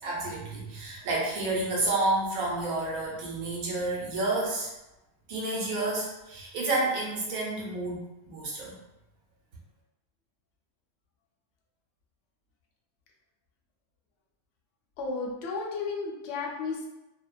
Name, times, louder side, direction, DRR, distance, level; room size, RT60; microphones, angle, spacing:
voice 1, 0.0-4.7 5.3-8.8, right 2 dB, 70° right, -3 dB, 1.0 m, -30 dB
voice 2, 15.0-16.9, left 4 dB, 65° left, -1 dB, 0.7 m, -33 dB
2.6 x 2.1 x 2.2 m, 0.95 s
omnidirectional pair, 1.6 m